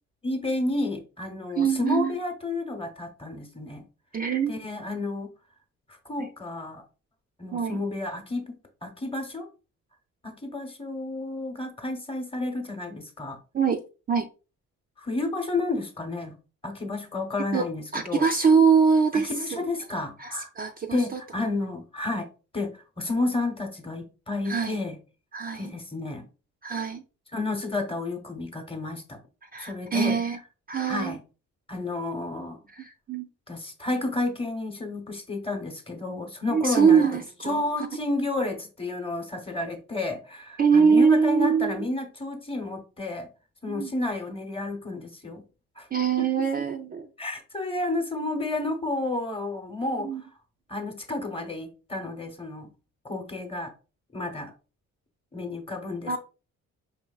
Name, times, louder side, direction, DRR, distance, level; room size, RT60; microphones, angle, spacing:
voice 1, 0.2-3.8 4.5-5.3 6.0-6.8 7.4-9.5 10.2-13.4 15.0-16.4 16.6-18.2 19.1-20.5 20.9-22.3 22.5-25.0 25.5-26.3 27.3-29.2 29.6-30.2 30.9-31.2 31.7-32.6 33.5-37.0 37.5-43.3 43.6-45.4 45.8-45.9 46.2-46.3 47.2-50.1 50.7-52.7 53.0-53.7 54.1-54.5 55.3-56.2, left 2 dB, 20° left, 0.9 m, -31 dB
voice 2, 1.6-2.1 4.1-4.5 6.2-6.3 7.5-7.8 13.5-13.8 14.1-14.3 17.5-17.7 17.9-19.7 20.2-21.2 24.5-24.8 25.3-25.7 26.6-27.0 29.4-30.4 30.7-31.2 32.7-33.3 36.5-37.9 40.6-41.7 43.7-43.9 45.9-47.1 50.0-50.2 56.0-56.2, right 6 dB, 30° right, 0.4 m, -23 dB
4.6 x 3.0 x 2.3 m
cardioid pair, 90°, 30 cm